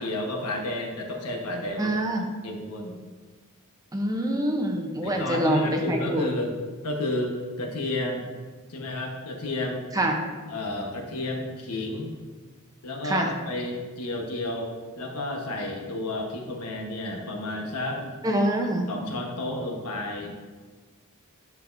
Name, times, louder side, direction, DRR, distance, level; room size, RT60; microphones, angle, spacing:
voice 1, 0.0-1.9 2.4-3.0 5.0-6.6 6.8-8.3 8.7-9.8 10.5-12.1 12.8-18.2 18.9-20.3, left 2 dB, 80° left, 1 dB, 1.2 m, -31 dB
voice 2, 1.8-2.3 3.9-6.2 9.9-10.2 13.0-13.3 18.2-18.9, right 1 dB, 15° right, 1 dB, 0.7 m, -25 dB
9.6 x 5.9 x 2.6 m, 1.4 s
head